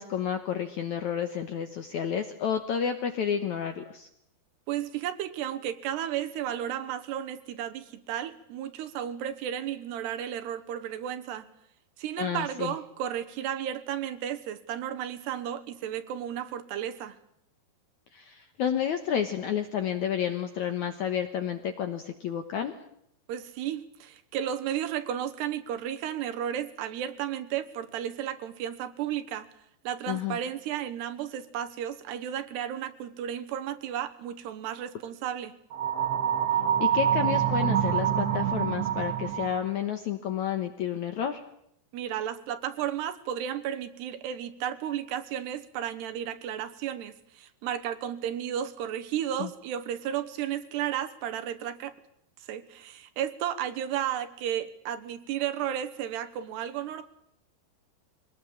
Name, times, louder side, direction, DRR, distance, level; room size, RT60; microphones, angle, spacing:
voice 1, 0.0-4.1 12.2-12.7 18.1-22.8 30.1-30.4 36.8-41.4 49.4-49.5, left 8 dB, 75° left, 8 dB, 1.7 m, -30 dB
voice 2, 4.7-11.5 12.0-17.2 23.3-29.5 29.8-35.5 41.9-51.9 52.5-57.0, right 10 dB, 75° right, 9 dB, 3.2 m, -33 dB
sound 1, 35.7-39.7, right 9 dB, 55° right, 2.0 m, -26 dB
24.0 x 19.0 x 8.7 m, 0.74 s
omnidirectional pair, 5.0 m